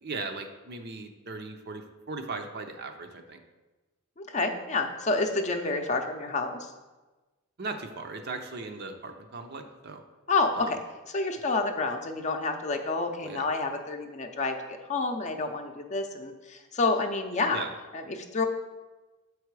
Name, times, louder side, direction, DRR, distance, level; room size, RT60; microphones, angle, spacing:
voice 1, 0.0-3.4 7.6-10.0 10.5-10.7 13.2-13.5 17.5-17.7, right 3 dB, 50° right, 5 dB, 0.6 m, -38 dB
voice 2, 4.2-6.7 10.3-10.8 11.1-17.6 17.9-18.5, left 3 dB, 35° left, 5 dB, 0.6 m, -29 dB
7.4 x 4.8 x 4.7 m, 1.2 s
head